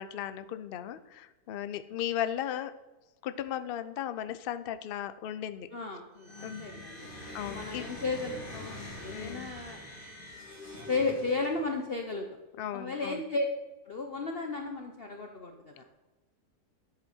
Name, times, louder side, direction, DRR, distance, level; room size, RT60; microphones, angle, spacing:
voice 1, 0.0-2.7 3.2-5.7 6.4-6.7 7.3-7.9 9.1-9.5 12.6-13.2, left 10 dB, 80° left, 11 dB, 0.5 m, -36 dB
voice 2, 5.7-7.1 7.5-9.8 10.9-12.3 12.7-13.5 13.9-15.8, left 3 dB, 45° left, 3 dB, 0.8 m, -34 dB
sound 1, 6.2-11.8, left 1 dB, 30° left, 3.0 m, -44 dB
11.0 x 8.3 x 4.4 m, 1.1 s
omnidirectional pair, 1.7 m